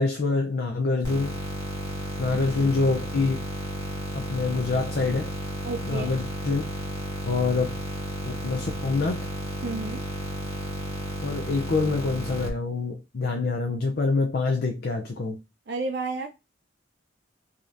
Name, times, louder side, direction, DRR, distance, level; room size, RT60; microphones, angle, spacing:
voice 1, 0.0-1.4 2.2-3.5 4.1-5.3 5.8-6.7 7.3-7.8 8.2-9.3 11.2-15.4, left 3 dB, 55° left, 0.5 m, -26 dB
sound 1, 1.0-12.5, equal, 20° left, 1.5 m, -33 dB
voice 2, 5.6-6.1 9.6-10.0 15.7-16.3, right 3 dB, 60° right, 0.4 m, -31 dB
4.9 x 2.9 x 2.5 m
head